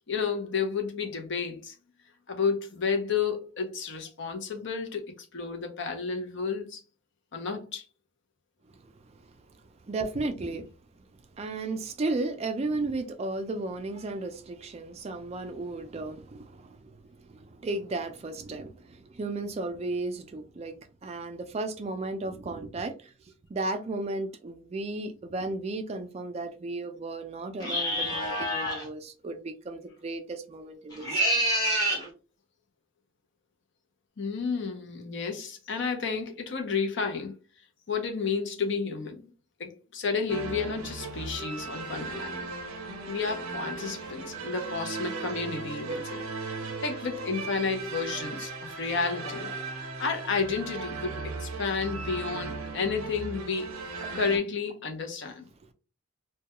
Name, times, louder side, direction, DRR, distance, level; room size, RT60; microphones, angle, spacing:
voice 1, 0.1-1.7 2.3-6.8 7.3-7.8 34.2-37.4 37.9-39.3 39.6-42.4 43.1-46.2 46.8-53.7 54.1-55.5, left 5 dB, 60° left, 0.6 m, -31 dB
voice 2, 8.7-10.7 11.0-11.1 11.3-20.8 21.0-23.1 23.5-31.5, right 2 dB, 30° right, 0.3 m, -35 dB
sound 1, 27.6-28.9 30.9-32.1, equal, 20° left, 0.9 m, -27 dB
sound 2, 40.3-54.4, right 4 dB, 90° right, 0.6 m, -37 dB
2.2 x 2.2 x 2.8 m
head